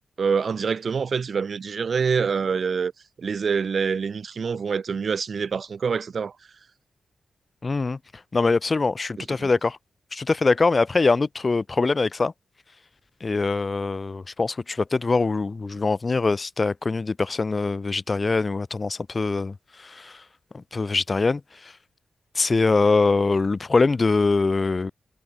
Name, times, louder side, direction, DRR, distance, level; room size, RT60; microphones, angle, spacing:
voice 1, 0.2-2.9 3.2-6.3 9.4-9.5, right 5 dB, 60° right, 3.7 m, -25 dB
voice 2, 7.6-8.0 8.3-9.8 10.1-12.3 13.2-20.2 20.5-21.7 22.3-24.9, left 3 dB, 40° left, 0.7 m, -23 dB
supercardioid pair, 45°, 0 cm